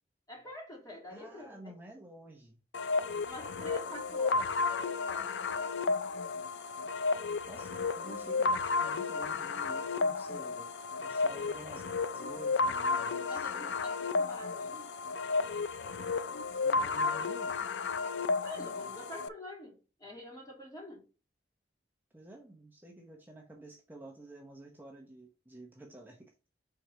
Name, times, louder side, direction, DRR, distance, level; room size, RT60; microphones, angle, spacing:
voice 1, 0.3-1.7 3.2-5.8 13.3-14.9 18.4-21.1, left 1 dB, 20° left, 2.6 m, -47 dB
voice 2, 1.1-2.6 7.5-10.7 11.0-11.9 12.1-13.8 16.6-17.6 22.1-26.5, right 1 dB, 10° right, 0.8 m, -50 dB
sound 1, 2.7-19.3, left 4 dB, 85° left, 0.5 m, -33 dB
4.6 x 3.8 x 5.6 m
head